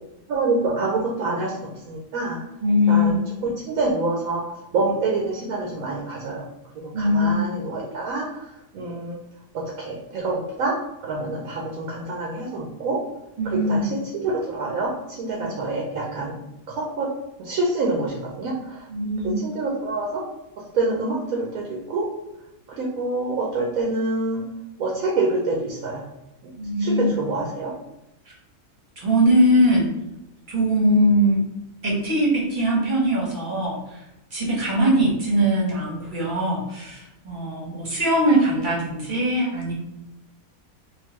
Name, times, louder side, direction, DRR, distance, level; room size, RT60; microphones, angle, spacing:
voice 1, 0.3-2.4 2.9-4.4 4.7-6.4 6.7-9.2 9.5-10.8 11.0-13.0 13.4-17.1 17.4-18.9 19.2-20.3 20.7-22.1 22.7-24.5 24.8-26.0 26.8-27.8, right 3 dB, 70° right, -2 dB, 1.1 m, -26 dB
voice 2, 2.6-3.2 6.9-7.4 13.4-13.8 15.4-15.5 18.9-19.3 26.6-27.1 28.3-28.4 29.0-29.9 30.5-31.4 31.8-34.0 34.3-39.7, equal, 35° right, -4 dB, 1.1 m, -21 dB
3.6 x 2.7 x 3.1 m, 0.88 s
omnidirectional pair, 1.6 m